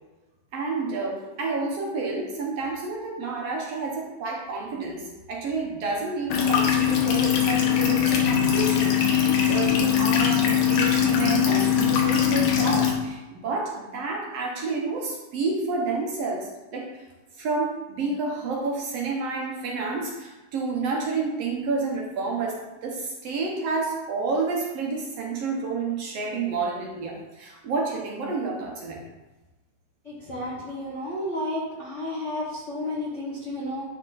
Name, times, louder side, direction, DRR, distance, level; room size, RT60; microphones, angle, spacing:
voice 1, 0.5-17.0 17.4-29.0, right 3 dB, 65° right, -1 dB, 1.8 m, -30 dB
sound 1, 6.3-12.9, left 9 dB, 85° left, 2.6 m, -21 dB
voice 2, 30.3-33.8, left 1 dB, 50° left, -6 dB, 0.8 m, -31 dB
11.0 x 4.4 x 4.0 m, 1.1 s
omnidirectional pair, 3.6 m